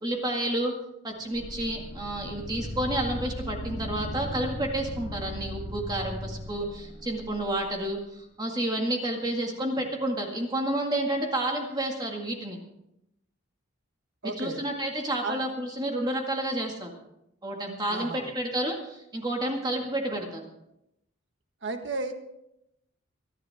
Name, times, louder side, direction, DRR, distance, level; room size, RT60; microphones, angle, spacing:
voice 1, 0.0-0.7 1.0-12.6 14.2-16.9 17.4-20.4, right 1 dB, 20° right, 1 dB, 1.9 m, -30 dB
sound 1, 1.3-7.5, left 1 dB, 40° left, 5.3 m, -37 dB
voice 2, 14.2-14.6 15.2-15.4 17.9-18.3 21.6-22.1, right 3 dB, 55° right, 6 dB, 1.5 m, -33 dB
25.5 x 10.5 x 3.6 m, 0.83 s
head